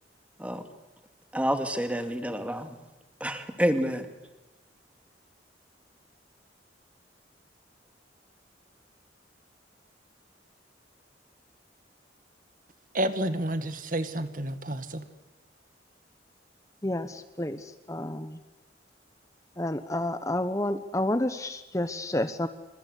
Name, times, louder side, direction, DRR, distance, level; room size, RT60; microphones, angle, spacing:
voice 1, 1.3-2.7 3.2-4.1, equal, 5° right, 7 dB, 2.3 m, -28 dB
voice 2, 12.9-15.0, right 1 dB, 45° right, 10 dB, 1.8 m, -30 dB
voice 3, 16.8-18.4 19.6-22.5, left 1 dB, 15° left, 10 dB, 1.1 m, -30 dB
27.5 x 26.0 x 8.3 m, 1.1 s
head